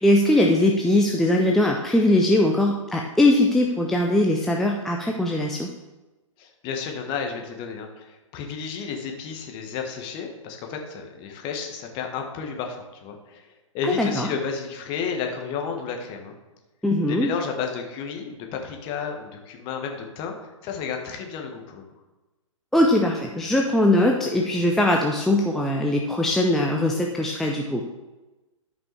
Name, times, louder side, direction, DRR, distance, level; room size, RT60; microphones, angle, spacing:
voice 1, 0.0-5.7 13.8-14.3 16.8-17.3 22.7-27.9, left 1 dB, ahead, 0 dB, 0.4 m, -21 dB
voice 2, 6.4-13.5 13.7-16.3 17.1-21.8, left 6 dB, 30° left, 3 dB, 1.3 m, -32 dB
12.5 x 5.4 x 3.3 m, 1.1 s
figure-of-eight pair, 120°, 17 cm